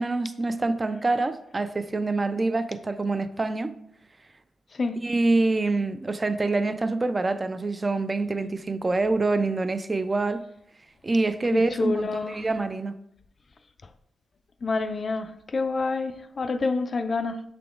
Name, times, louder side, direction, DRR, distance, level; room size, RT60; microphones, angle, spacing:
voice 1, 0.0-3.7 5.0-10.4 11.0-13.0, right 3 dB, 30° right, 0.4 m, -26 dB
voice 2, 4.7-5.0 11.5-12.4 14.6-17.4, left 3 dB, 50° left, 0.3 m, -28 dB
5.8 x 3.5 x 2.4 m
cardioid pair, 55°, 0 cm